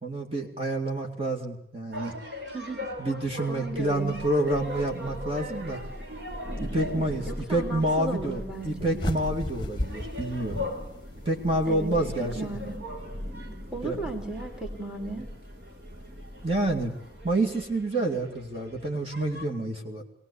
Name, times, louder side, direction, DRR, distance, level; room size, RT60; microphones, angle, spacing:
voice 1, 0.0-2.1 3.0-5.8 6.6-10.6 11.3-12.6 13.8-14.0 16.4-16.9 17.2-20.0, right 1 dB, 35° right, 2 dB, 2.4 m, -28 dB
sound 1, 1.9-19.5, left 1 dB, 75° right, 3.7 m, -42 dB
voice 2, 2.5-2.9 3.5-4.2 7.3-9.0 11.7-11.9 12.2-12.8 13.7-15.3, right 2 dB, 5° right, 3 dB, 2.6 m, -35 dB
Thunder / Rain, 3.5-17.6, equal, 55° right, 3.4 m, -41 dB
Small Bird Flying, 9.0-11.3, left 1 dB, 25° left, 1.3 m, -34 dB
21.0 x 18.0 x 8.4 m, 0.72 s
head